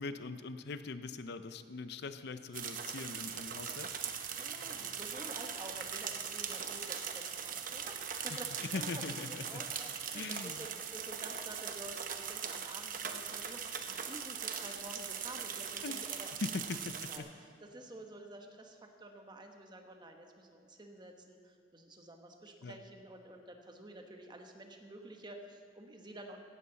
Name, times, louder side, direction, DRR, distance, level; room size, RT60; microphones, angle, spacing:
voice 1, 0.0-3.9 8.3-8.4 8.7-9.6 10.1-10.7 15.8-16.0 16.4-17.3 22.6-22.8, left 3 dB, 60° left, 11 dB, 0.6 m, -41 dB
sound 1, 2.5-17.2, right 7 dB, 50° right, 0.9 m, -40 dB
voice 2, 4.3-8.5 8.7-16.6 16.8-26.4, right 1 dB, 25° right, 3 dB, 1.3 m, -50 dB
17.0 x 12.5 x 4.0 m, 2.3 s
head